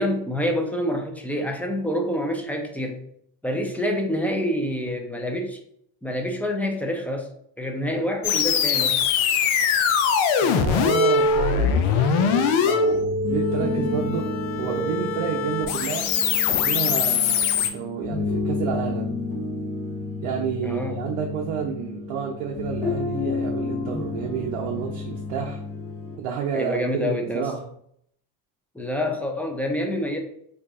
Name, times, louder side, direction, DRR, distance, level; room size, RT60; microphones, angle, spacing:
voice 1, 0.0-3.0 3.4-5.6 6.0-7.3 7.6-9.0 20.6-21.0 26.5-27.5 28.7-30.2, left 1 dB, 5° left, 2 dB, 0.6 m, -27 dB
sound 1, 8.2-17.7, left 6 dB, 70° left, 0.6 m, -22 dB
voice 2, 10.4-16.1 16.5-19.1 20.2-25.6 26.2-27.7, right 7 dB, 75° right, 0 dB, 0.7 m, -30 dB
sound 2, 12.9-26.2, left 3 dB, 30° left, 1.0 m, -31 dB
2.6 x 2.5 x 3.6 m, 0.69 s
supercardioid pair, 70°, 50 cm